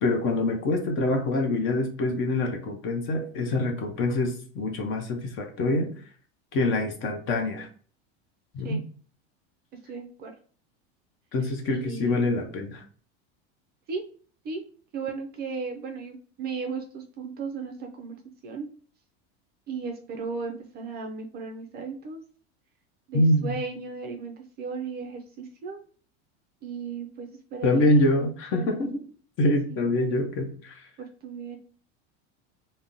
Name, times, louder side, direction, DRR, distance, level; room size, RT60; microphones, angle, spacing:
voice 1, 0.0-6.0 6.5-7.7 8.5-8.8 11.3-12.8 23.1-23.6 27.6-29.0 29.4-30.9, left 2 dB, 40° left, 3 dB, 0.7 m, -25 dB
voice 2, 9.9-10.3 11.8-12.2 13.9-14.0 14.4-14.6 14.9-18.2 18.4-18.7 19.7-22.2 23.1-25.8 26.6-27.9 28.5-28.9 29.7-30.2 31.0-31.6, right 5 dB, 30° right, 3 dB, 0.4 m, -36 dB
3.5 x 2.1 x 2.6 m, 0.43 s
supercardioid pair, 130°, 33 cm